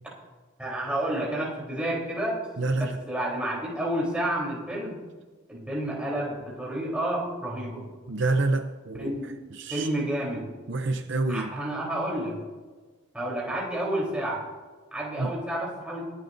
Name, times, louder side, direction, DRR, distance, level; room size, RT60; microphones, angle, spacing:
voice 1, 0.6-2.4 2.8-5.0 5.5-7.8 9.0-9.2 9.7-10.5 11.3-12.4 13.1-14.4 14.9-16.1, right 1 dB, 5° right, -4 dB, 3.7 m, -30 dB
voice 2, 2.6-2.9 8.1-9.1 9.6-9.9 10.7-11.5 15.2-15.3, right 2 dB, 55° right, 7 dB, 0.7 m, -27 dB
23.5 x 11.5 x 2.7 m, 1.4 s
head